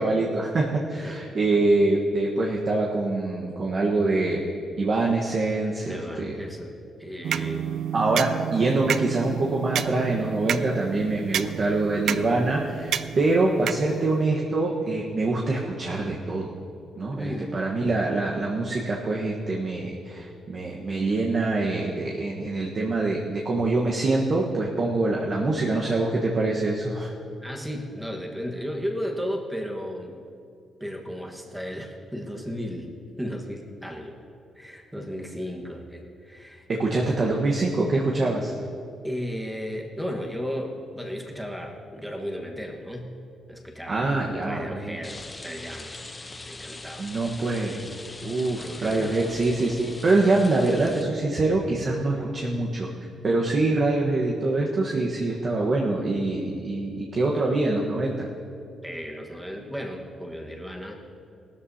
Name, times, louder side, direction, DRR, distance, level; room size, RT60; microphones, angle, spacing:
voice 1, 0.0-4.4 4.8-6.4 7.3-7.4 7.9-16.5 17.0-27.1 36.7-38.5 43.9-45.0 47.0-47.8 48.2-52.9 53.2-58.3, right 2 dB, 40° right, -2 dB, 1.2 m, -25 dB
voice 2, 0.9-1.2 5.9-6.7 7.0-7.7 17.1-17.5 27.4-30.1 30.8-32.9 33.2-34.2 34.6-36.6 36.9-37.1 39.0-43.1 43.5-46.0 46.4-47.1 48.6-49.2 50.2-50.3 52.1-52.3 58.8-60.9, equal, 5° right, 1 dB, 1.4 m, -34 dB
sound 1, 7.2-14.3, right 9 dB, 70° right, 0.4 m, -31 dB
Rain, 45.0-51.0, left 2 dB, 20° left, 0.8 m, -41 dB
18.5 x 13.0 x 2.8 m, 2.5 s
cardioid pair, 130°, 0 cm